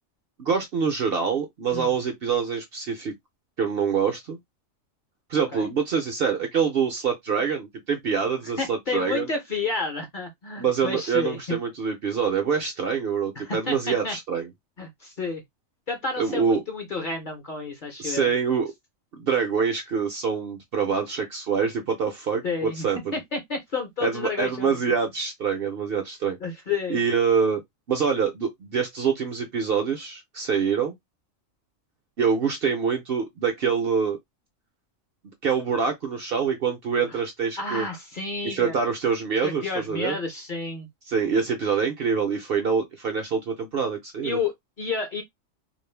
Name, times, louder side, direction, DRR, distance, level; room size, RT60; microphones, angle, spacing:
voice 1, 0.4-3.1 3.6-4.4 5.3-9.3 10.6-14.5 16.2-16.6 18.0-18.7 19.1-23.1 24.0-26.4 26.9-27.6 27.9-30.9 32.2-34.2 35.4-37.9 38.4-40.2 41.1-44.4, right 6 dB, 60° right, 0.6 m, -25 dB
voice 2, 8.6-11.6 13.4-14.2 14.8-15.4 15.9-18.3 22.4-22.9 23.1-24.8 26.4-27.0 37.1-37.2 37.6-38.7 39.4-40.9 44.2-45.2, left 4 dB, 50° left, 0.7 m, -30 dB
2.4 x 2.0 x 3.2 m
omnidirectional pair, 1.4 m